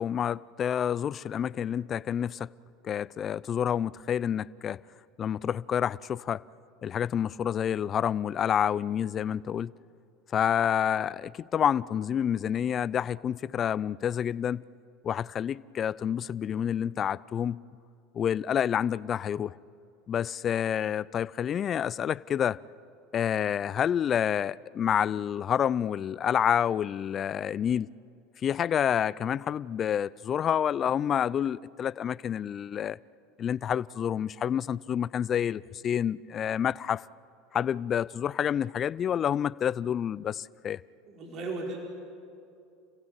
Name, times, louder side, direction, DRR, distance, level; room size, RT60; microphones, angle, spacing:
voice 1, 0.0-2.5 2.8-4.8 5.2-6.4 6.8-9.7 10.3-14.6 15.0-17.6 18.1-19.6 20.1-22.6 23.1-27.9 28.4-33.0 33.4-37.1 37.5-40.8, left 9 dB, 40° left, 0.5 m, -28 dB
voice 2, 41.0-41.8, right 3 dB, 45° right, 5.3 m, -36 dB
29.5 x 16.0 x 8.9 m
hypercardioid pair, 85°, 0 cm